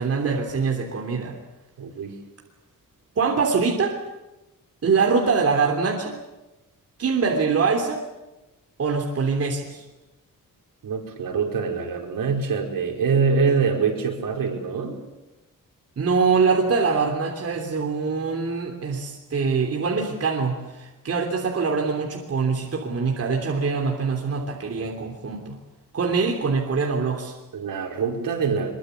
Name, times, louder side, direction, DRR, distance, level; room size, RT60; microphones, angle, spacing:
voice 1, 0.0-1.3 3.1-4.0 4.8-6.1 7.0-8.0 8.8-9.8 16.0-25.6 25.9-27.4, right 5 dB, 45° right, 1 dB, 3.3 m, -23 dB
voice 2, 1.8-2.2 10.8-15.0 27.5-28.7, right 5 dB, 75° right, 1 dB, 5.2 m, -24 dB
23.5 x 23.0 x 8.3 m, 1.0 s
wide cardioid pair, 180°, 34 cm